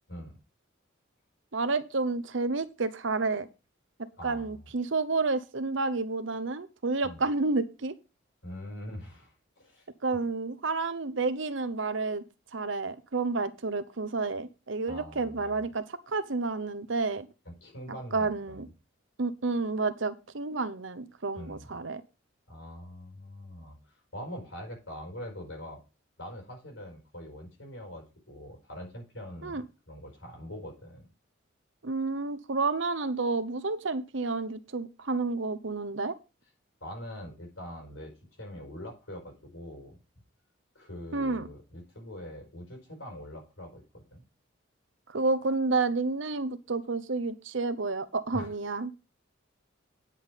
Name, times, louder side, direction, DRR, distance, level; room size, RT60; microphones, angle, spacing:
voice 1, 1.5-3.5 4.0-7.9 10.0-12.2 12.5-17.3 18.1-18.7 19.2-22.0 29.4-29.6 31.8-36.1 41.1-41.5 45.1-48.9, right 3 dB, 70° right, 13 dB, 0.9 m, -30 dB
voice 2, 4.2-4.7 7.0-7.2 8.4-9.9 14.9-15.6 17.4-18.6 21.4-21.7 22.5-25.8 26.2-31.0 36.8-38.1 38.4-40.0 40.7-44.2 48.3-48.5, equal, 75° left, 1 dB, 4.8 m, -43 dB
10.5 x 5.7 x 5.2 m, 0.30 s
head